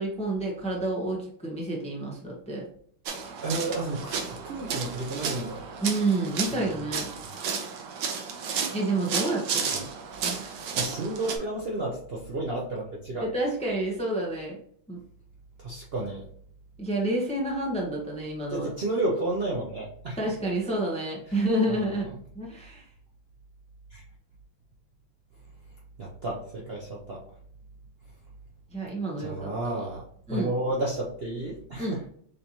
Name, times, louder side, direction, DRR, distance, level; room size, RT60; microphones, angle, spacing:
voice 1, 0.0-2.7 5.8-7.1 8.7-9.9 10.2-10.6 13.2-14.6 14.9-15.0 16.8-18.7 20.2-22.8 28.7-29.9 30.3-30.5 31.8-32.0, right 2 dB, 10° left, -2 dB, 0.4 m, -29 dB
sound 1, 3.1-11.4, right 6 dB, 65° right, 1.3 m, -33 dB
voice 2, 3.4-5.6 6.7-6.8 10.8-13.3 15.6-16.2 18.5-20.2 21.7-21.8 23.9-24.0 26.0-27.2 29.2-30.0 30.3-32.0, right 2 dB, 90° right, -3 dB, 0.5 m, -31 dB
6.6 x 2.7 x 2.9 m, 0.63 s
omnidirectional pair, 2.2 m